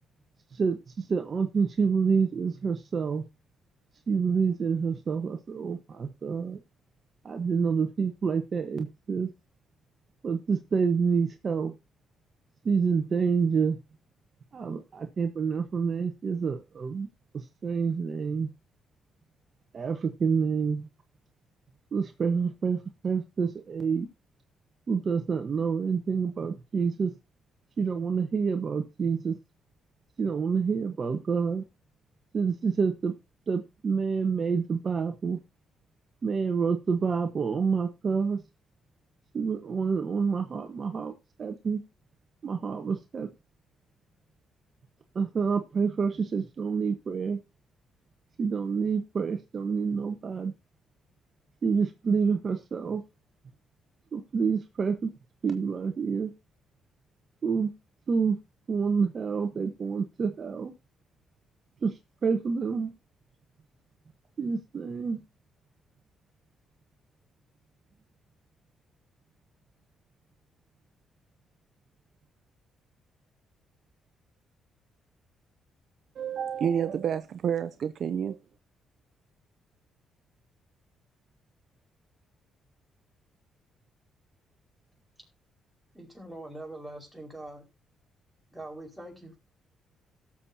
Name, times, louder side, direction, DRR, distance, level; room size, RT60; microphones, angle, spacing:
voice 1, 0.5-3.2 4.1-6.6 7.2-9.3 10.2-11.7 12.6-13.8 14.5-17.1 17.3-18.5 19.7-20.9 21.9-24.1 24.9-27.1 27.8-29.3 30.2-31.6 32.3-33.1 33.5-35.4 36.2-38.4 39.3-41.1 41.4-41.8 42.4-43.3 45.1-47.4 48.4-50.5 51.6-53.0 54.1-55.1 55.4-56.3 57.4-57.7 58.1-58.4 58.7-60.7 61.8-61.9 62.2-62.9 64.4-65.2, right 5 dB, 45° right, 1.2 m, -28 dB
voice 2, 76.2-78.4, right 8 dB, 60° right, 0.6 m, -29 dB
voice 3, 85.9-87.7 88.5-89.4, right 1 dB, 5° right, 5.1 m, -43 dB
17.5 x 7.4 x 2.8 m
cardioid pair, 90°, 0 cm